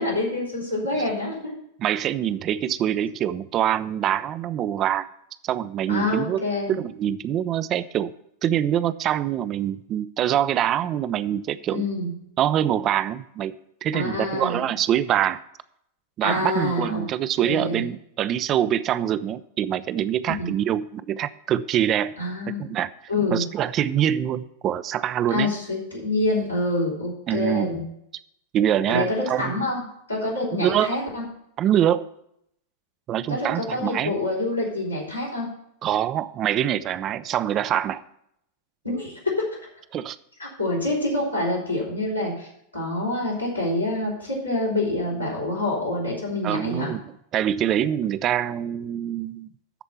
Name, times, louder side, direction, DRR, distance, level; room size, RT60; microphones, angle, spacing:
voice 1, 0.0-1.5 5.9-6.8 11.7-12.1 13.9-14.6 16.2-17.0 17.4-17.8 20.4-20.5 22.2-22.6 23.1-23.4 25.3-27.8 28.9-29.8 30.1-31.2 33.3-35.5 38.8-39.4 40.4-46.9, left 2 dB, 90° left, -6 dB, 3.7 m, -26 dB
voice 2, 1.8-5.1 5.4-8.1 8.4-11.9 12.4-15.4 16.2-22.2 22.6-22.9 23.3-25.5 27.3-27.8 28.5-29.5 30.5-31.0 31.6-32.1 33.1-34.2 35.8-38.0 39.9-40.2 46.4-47.1 47.3-49.5, right 10 dB, 30° right, 14 dB, 0.4 m, -24 dB
13.0 x 4.4 x 6.9 m, 0.75 s
figure-of-eight pair, 90°, 0 cm